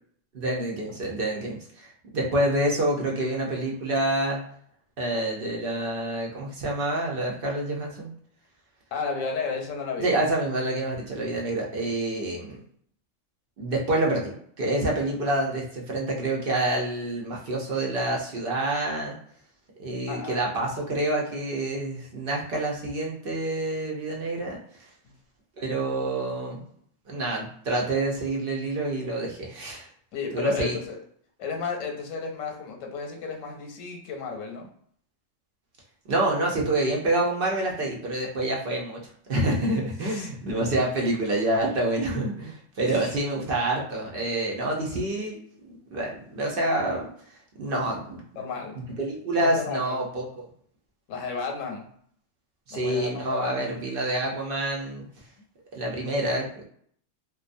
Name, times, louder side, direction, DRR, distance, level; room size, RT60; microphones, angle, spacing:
voice 1, 0.3-4.4 5.0-8.1 10.0-12.6 13.6-19.2 19.8-24.6 25.6-26.6 27.1-29.9 30.3-30.8 36.1-39.0 39.3-45.4 45.6-47.1 47.6-48.2 48.7-50.5 52.7-55.1 55.7-56.7, right 1 dB, 55° right, -2 dB, 0.7 m, -27 dB
voice 2, 8.9-10.1 20.1-20.5 25.0-25.2 30.1-31.0 31.4-34.7 40.0-40.3 42.9-43.1 44.6-44.9 48.4-48.7 49.4-50.0 51.1-51.9 52.7-53.7 55.3-55.4, left 5 dB, 85° left, 2 dB, 1.0 m, -33 dB
2.4 x 2.2 x 2.5 m, 0.62 s
omnidirectional pair, 1.3 m